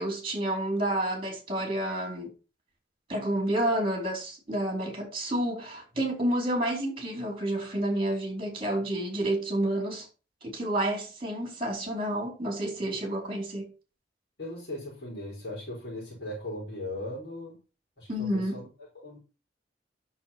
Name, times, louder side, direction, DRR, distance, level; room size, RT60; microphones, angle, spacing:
voice 1, 0.0-2.3 3.1-10.1 10.4-13.7 18.1-18.6, right 1 dB, 30° right, 4.3 m, -30 dB
voice 2, 14.4-17.6 18.0-18.6 19.0-19.2, left 1 dB, 70° left, 5.1 m, -38 dB
8.8 x 7.1 x 6.0 m
head